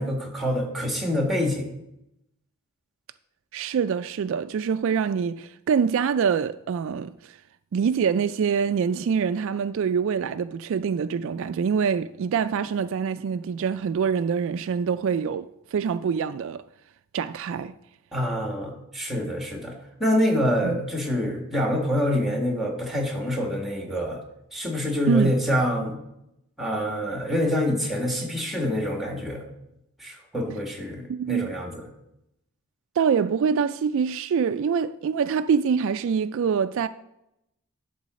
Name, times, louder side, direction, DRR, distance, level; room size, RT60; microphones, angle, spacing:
voice 1, 0.0-1.7 18.1-19.7 20.0-24.2 24.5-26.0 26.6-29.5 30.0-31.9, equal, ahead, 1.9 m, -26 dB
voice 2, 3.5-7.4 7.7-16.6 17.1-17.7 20.6-20.8 25.1-25.3 31.1-31.5 33.0-36.9, right 6 dB, 65° right, 0.3 m, -25 dB
11.5 x 3.9 x 6.3 m
head